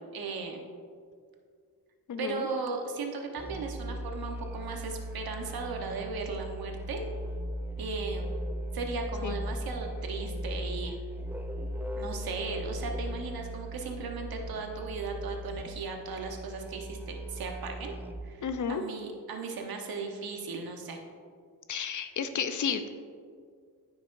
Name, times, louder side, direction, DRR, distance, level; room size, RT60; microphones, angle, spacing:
voice 1, 0.1-0.6 2.2-7.0 7.8-8.3 8.7-11.0 12.0-18.0 18.2-21.0, right 4 dB, 70° right, 3 dB, 1.1 m, -37 dB
voice 2, 2.1-2.5 9.2-9.4 18.4-18.8 21.7-22.9, left 7 dB, 50° left, 9 dB, 0.6 m, -32 dB
Musical instrument, 3.4-18.4, equal, 5° right, 0.4 m, -38 dB
9.5 x 6.1 x 2.6 m, 2.1 s
cardioid pair, 65°, 38 cm